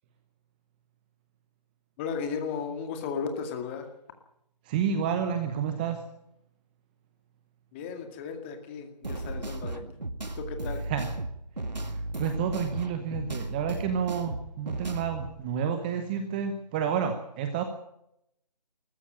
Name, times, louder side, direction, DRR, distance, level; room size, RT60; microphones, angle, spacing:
voice 1, 2.0-3.9 7.7-9.8 10.3-10.8, left 6 dB, 15° left, 6 dB, 2.1 m, -35 dB
voice 2, 4.6-6.0 10.9-11.1 11.8-17.6, right 7 dB, 15° right, 7 dB, 0.9 m, -30 dB
sound 1, 9.0-15.3, right 2 dB, 85° right, 2.1 m, -35 dB
21.0 x 14.0 x 8.8 m, 0.79 s
figure-of-eight pair, 155°, 21 cm